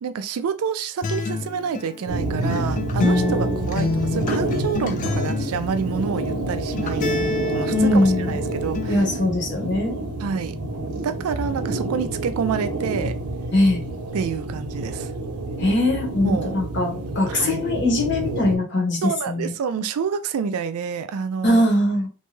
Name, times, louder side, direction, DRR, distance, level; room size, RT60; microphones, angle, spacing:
voice 1, 0.0-8.0 8.3-9.0 10.2-10.6 11.0-13.1 14.1-15.1 16.2-16.5 17.3-17.6 19.0-21.6, right 6 dB, 70° right, 0.3 m, -28 dB
Acoustic guitar, 1.0-9.0, left 3 dB, 35° left, 0.3 m, -28 dB
sound 1, 2.1-18.6, right 2 dB, 85° right, 0.7 m, -28 dB
voice 2, 7.7-8.3 8.9-10.0 13.5-13.8 15.6-19.5 21.4-22.1, left 1 dB, 50° left, 0.9 m, -21 dB
2.6 x 2.3 x 3.0 m
head